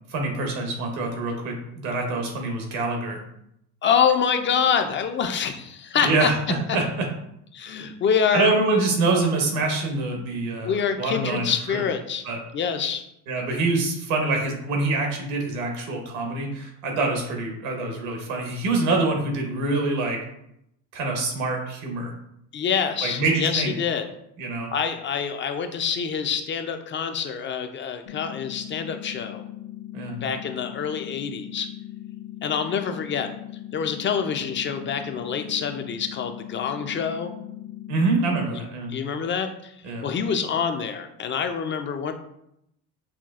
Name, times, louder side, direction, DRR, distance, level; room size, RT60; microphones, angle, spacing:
voice 1, 0.1-3.2 6.0-7.1 8.3-11.8 12.2-12.4 13.3-20.2 20.9-22.1 23.0-23.7 24.4-24.7 29.9-30.2 37.9-38.9 39.8-40.1, right 3 dB, 85° right, 2 dB, 1.2 m, -25 dB
voice 2, 3.8-6.3 6.7-6.8 7.5-8.5 10.6-12.3 12.5-13.0 22.5-24.0 24.7-29.4 30.2-31.7 32.4-33.3 33.7-37.3 38.9-39.8 40.0-42.1, left 7 dB, 30° left, 7 dB, 0.4 m, -26 dB
sound 1, 28.1-38.1, left 14 dB, 65° left, 0.7 m, -39 dB
5.7 x 2.2 x 2.4 m, 0.77 s
supercardioid pair, 90°, 39 cm